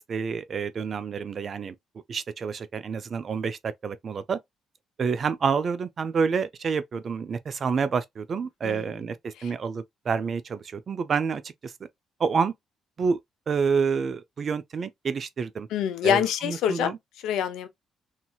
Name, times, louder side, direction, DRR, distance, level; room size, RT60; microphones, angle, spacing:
voice 1, 0.0-1.7 2.1-4.4 5.0-11.7 12.2-12.5 13.0-13.2 13.5-15.7 16.0-17.0, right 5 dB, 50° right, 0.4 m, -28 dB
voice 2, 8.6-9.0 9.4-9.5 15.7-16.9 17.2-17.7, left 9 dB, 90° left, 0.5 m, -26 dB
2.9 x 2.7 x 2.3 m
cardioid pair, 90°, 0 cm